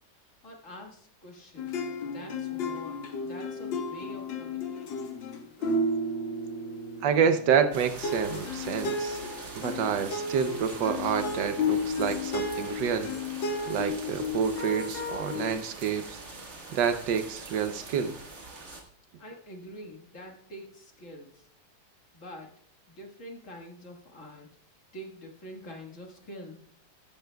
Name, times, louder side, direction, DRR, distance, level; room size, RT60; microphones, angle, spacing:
voice 1, 0.2-5.6 19.2-21.5 22.1-22.6 22.9-24.5 24.9-26.6, equal, 45° left, 0 dB, 2.0 m, -46 dB
sound 1, 1.6-7.7 8.0-15.5, left 2 dB, 90° left, 2.0 m, -33 dB
voice 2, 7.0-9.2 9.5-13.1 13.7-16.2 16.7-18.1, right 7 dB, 75° right, 9 dB, 1.4 m, -28 dB
sound 2, 7.7-18.8, right 3 dB, 40° right, 1.8 m, -44 dB
sound 3, 9.6-9.7 10.4-10.8 11.2-11.4 11.9-12.4 13.1-13.5 14.4-15.1, left 3 dB, 60° left, 2.2 m, -53 dB
15.0 x 13.0 x 2.3 m, 0.63 s
omnidirectional pair, 2.0 m